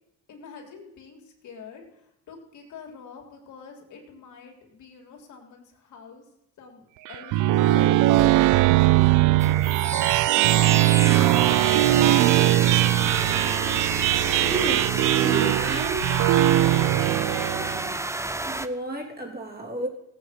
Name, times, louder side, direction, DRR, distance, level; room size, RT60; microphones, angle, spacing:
voice 1, 0.3-6.2 6.6-8.3 10.4-10.5, left 5 dB, 75° left, 1 dB, 3.1 m, -46 dB
sound 1, 7.1-17.9, right 16 dB, 85° right, 0.5 m, -20 dB
sound 2, 9.4-18.7, right 2 dB, 10° right, 0.8 m, -30 dB
voice 2, 14.4-14.9 15.2-16.1 18.4-19.9, right 2 dB, 30° right, 0 dB, 3.4 m, -31 dB
16.5 x 8.5 x 5.8 m, 0.82 s
cardioid pair, 90°, 30 cm